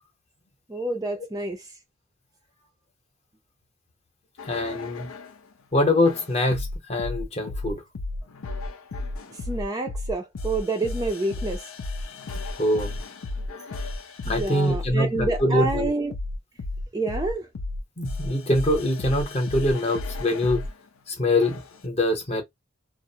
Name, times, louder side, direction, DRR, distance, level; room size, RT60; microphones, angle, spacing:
voice 1, 0.7-1.7 9.5-11.6 14.2-16.1 16.9-17.5, right 2 dB, 20° right, 0.4 m, -28 dB
sound 1, 4.4-5.4 6.0-20.7 21.4-21.8, left 2 dB, 85° left, 0.5 m, -33 dB
voice 2, 4.5-5.1 5.7-7.8 12.3-13.0 14.3-15.9 18.0-20.6 21.1-22.4, left 1 dB, 30° left, 0.8 m, -24 dB
2.4 x 2.0 x 2.7 m
head